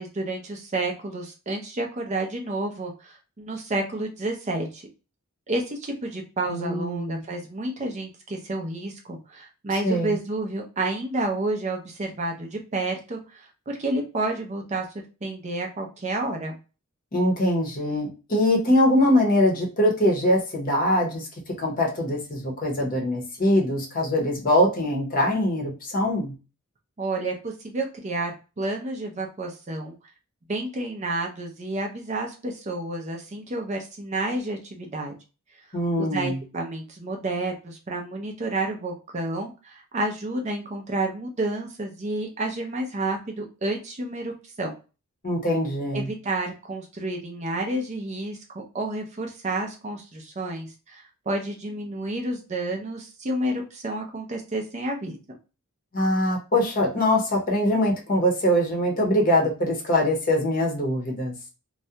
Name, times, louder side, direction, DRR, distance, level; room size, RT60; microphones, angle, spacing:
voice 1, 0.0-4.8 5.5-14.9 15.2-16.6 27.0-29.9 30.5-35.1 36.0-44.3 44.6-44.7 45.9-55.2, right 2 dB, 30° right, 2 dB, 0.4 m, -30 dB
voice 2, 6.5-7.2 9.8-10.2 17.1-26.3 35.7-36.4 45.2-46.1 55.9-61.3, left 1 dB, 40° left, 0 dB, 0.7 m, -23 dB
2.3 x 2.1 x 2.7 m, 0.31 s
head